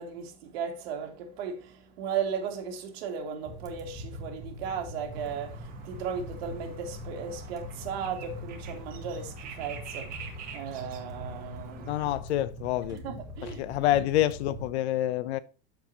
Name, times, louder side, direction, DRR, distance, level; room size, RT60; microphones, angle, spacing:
voice 1, 0.0-12.1 12.9-14.0, right 7 dB, 65° right, 2.4 m, -36 dB
sound 1, 3.4-14.7, left 1 dB, 10° right, 1.1 m, -42 dB
sound 2, 5.1-12.2, right 6 dB, 25° right, 1.6 m, -47 dB
voice 2, 11.9-13.0 13.4-15.4, left 13 dB, 80° left, 0.8 m, -27 dB
13.0 x 4.8 x 2.9 m
supercardioid pair, 175°, 33 cm